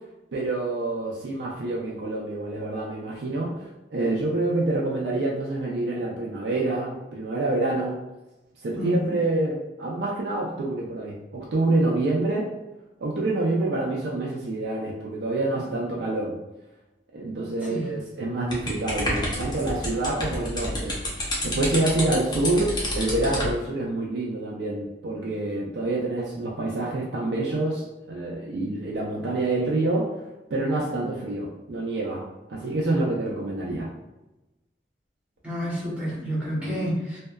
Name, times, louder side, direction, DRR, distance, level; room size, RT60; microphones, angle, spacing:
voice 1, 0.3-8.0 8.6-12.5 13.0-16.4 17.1-21.0 21.4-30.1 30.5-32.2 32.5-33.9 36.5-36.8, right 2 dB, 65° right, -4 dB, 0.4 m, -27 dB
voice 2, 8.8-9.1 17.7-17.9 35.4-37.2, equal, 5° right, -9 dB, 0.8 m, -29 dB
sound 1, 18.5-23.5, left 1 dB, 25° left, 0.5 m, -29 dB
2.6 x 2.2 x 2.2 m, 1.0 s
head